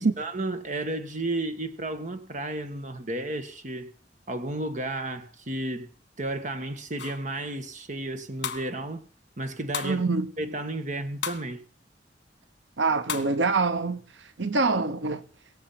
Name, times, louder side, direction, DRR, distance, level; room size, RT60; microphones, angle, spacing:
voice 1, 0.2-3.9 4.3-5.9 6.2-9.0 9.4-10.0 10.4-11.6, right 2 dB, 45° right, 1.7 m, -32 dB
sound 1, 7.0-7.3 8.4-8.7 9.7-10.0 11.2-11.5 13.1-13.4, left 7 dB, 65° left, 1.6 m, -33 dB
voice 2, 9.8-10.3 12.8-15.2, right 3 dB, 90° right, 1.0 m, -25 dB
22.5 x 7.4 x 5.8 m
head